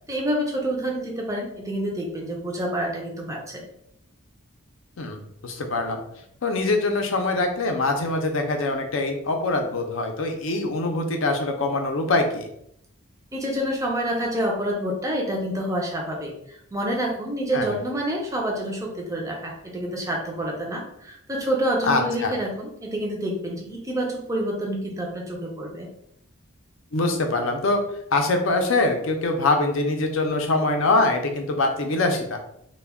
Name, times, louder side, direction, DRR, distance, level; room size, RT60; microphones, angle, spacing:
voice 1, 0.1-3.6 13.3-25.9, right 1 dB, 15° right, 0 dB, 0.5 m, -28 dB
voice 2, 5.0-6.0 6.4-12.5 17.5-17.7 21.8-22.3 26.9-27.8 28.1-32.4, left 2 dB, 65° left, 4 dB, 0.5 m, -23 dB
2.2 x 2.2 x 3.4 m, 0.73 s
head